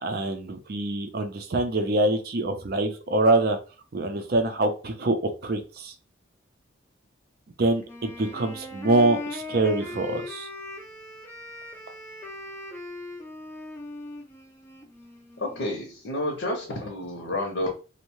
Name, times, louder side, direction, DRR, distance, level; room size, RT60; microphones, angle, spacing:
voice 1, 0.0-3.6 3.9-5.2 5.4-5.9 7.6-10.5, right 2 dB, 50° right, 7 dB, 0.5 m, -25 dB
Wind instrument woodwind instrument, 7.8-15.7, left 2 dB, 10° left, 0.4 m, -39 dB
voice 2, 15.4-17.7, left 1 dB, 70° left, 0 dB, 0.7 m, -30 dB
2.6 x 2.1 x 2.9 m, 0.34 s
head